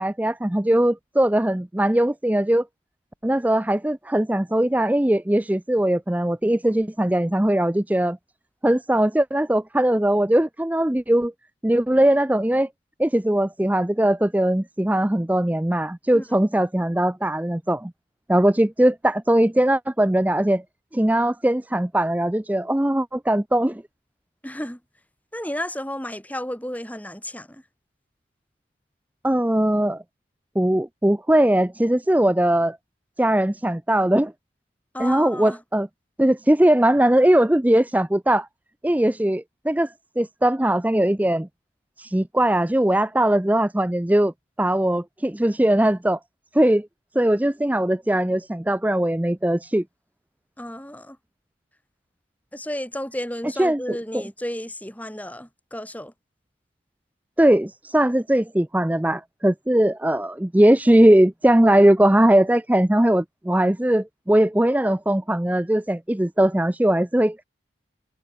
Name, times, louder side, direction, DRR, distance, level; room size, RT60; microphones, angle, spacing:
voice 1, 0.0-2.7 3.2-8.2 8.6-11.3 11.6-12.7 13.0-17.9 18.3-20.6 20.9-23.8 29.2-30.0 30.6-32.8 33.2-34.3 35.0-35.9 36.2-38.5 38.8-41.5 42.0-44.3 44.6-46.2 46.5-46.9 47.1-49.8 53.6-54.2 57.4-67.4, right 1 dB, 10° right, 0.4 m, -20 dB
voice 2, 24.4-24.8 25.3-27.6 34.9-35.6 50.6-51.2 52.5-56.1, left 1 dB, 10° left, 6.1 m, -32 dB
head